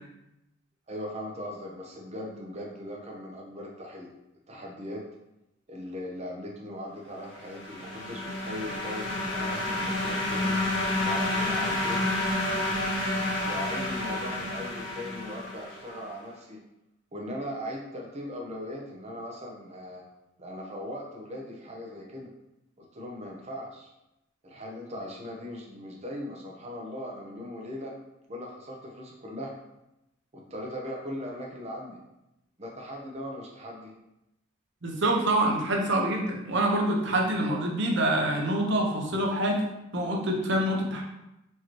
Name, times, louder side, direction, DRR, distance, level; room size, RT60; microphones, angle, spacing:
voice 1, 0.9-4.1 4.5-5.0 5.7-10.6 11.0-12.1 13.4-16.6 17.1-20.0 20.4-22.3 22.8-23.9 24.4-27.9 28.3-29.5 30.3-32.0 32.6-33.9, equal, 35° right, -1 dB, 0.8 m, -39 dB
sound 1, 7.3-15.9, left 1 dB, 75° left, 1.3 m, -30 dB
voice 2, 34.8-39.6 39.9-41.0, right 1 dB, 65° right, 0 dB, 0.8 m, -26 dB
4.6 x 2.9 x 3.0 m, 0.89 s
head